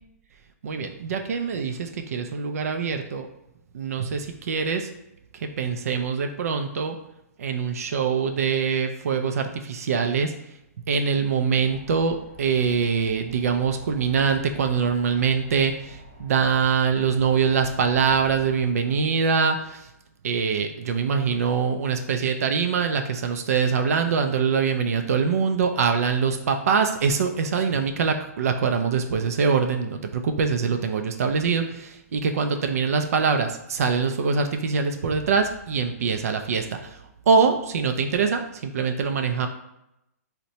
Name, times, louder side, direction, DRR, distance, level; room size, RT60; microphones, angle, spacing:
voice 1, 0.6-3.3 3.7-4.9 5.3-7.0 7.4-10.3 10.9-19.9 20.2-37.0 37.3-39.5, right 5 dB, 65° right, 5 dB, 0.3 m, -24 dB
sound 1, 11.6-18.6, equal, 35° right, 1.4 m, -47 dB
4.0 x 2.1 x 2.7 m, 0.87 s
hypercardioid pair, 170°, 9 cm